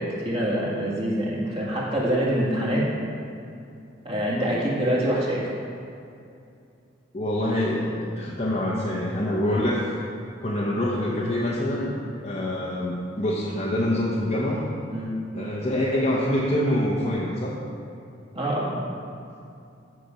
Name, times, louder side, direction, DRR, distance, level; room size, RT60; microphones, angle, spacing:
voice 1, 0.0-2.8 4.0-5.5 14.9-15.2 18.3-18.8, right 1 dB, 30° right, -5 dB, 1.7 m, -25 dB
voice 2, 7.1-9.9 10.4-12.0 12.2-14.7 15.3-17.6, left 1 dB, 35° left, -6 dB, 0.8 m, -25 dB
8.1 x 5.9 x 5.0 m, 2.6 s
head